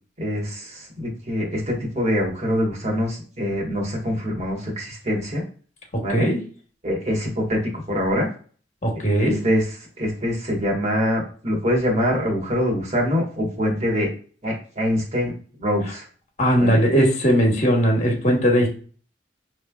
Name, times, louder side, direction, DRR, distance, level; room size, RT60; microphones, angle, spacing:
voice 1, 0.2-5.4 6.0-6.3 6.8-8.3 9.2-14.1 14.4-15.3 15.6-16.1 16.6-16.8, equal, 40° right, -2 dB, 1.5 m, -24 dB
voice 2, 5.9-6.4 8.8-9.4 16.4-18.7, equal, 40° left, 1 dB, 1.3 m, -19 dB
6.3 x 3.3 x 2.3 m, 0.41 s
head